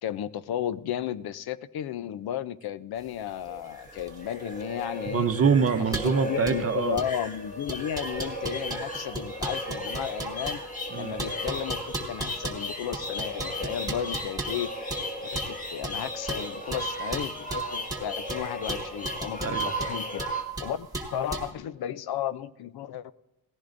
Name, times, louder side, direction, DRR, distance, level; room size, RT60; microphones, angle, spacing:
voice 1, 0.0-5.3 6.3-10.6 11.0-20.3 20.6-23.1, left 10 dB, 75° left, 16 dB, 0.6 m, -34 dB
sound 1, 3.1-21.5, right 2 dB, 10° right, 1.5 m, -37 dB
sound 2, 3.5-20.4, equal, 20° left, 1.5 m, -35 dB
voice 2, 5.1-7.0 10.9-11.2 19.4-19.7, right 6 dB, 40° right, 9 dB, 0.8 m, -25 dB
18.0 x 15.0 x 2.6 m, 0.95 s
wide cardioid pair, 140°, 38 cm